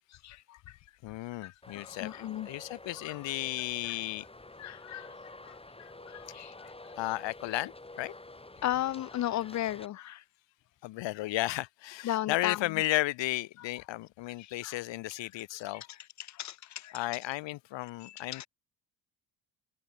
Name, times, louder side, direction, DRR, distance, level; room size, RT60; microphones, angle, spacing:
voice 1, 0.2-0.6 1.4-2.5 3.0-3.2 4.6-5.1 5.4-6.7 8.6-10.2 12.0-12.6 14.4-14.8 15.7-15.9 16.2-17.0 18.0-18.5, left 13 dB, 40° left, 0.5 m, -36 dB
voice 2, 1.0-2.1 2.4-4.2 6.9-8.1 10.8-15.8 16.9-18.5, left 17 dB, 65° left, 1.0 m, -34 dB
Traffic noise roadway noise, 1.6-9.9, left 2 dB, 10° left, 2.3 m, -49 dB
supercardioid pair, 65°, 47 cm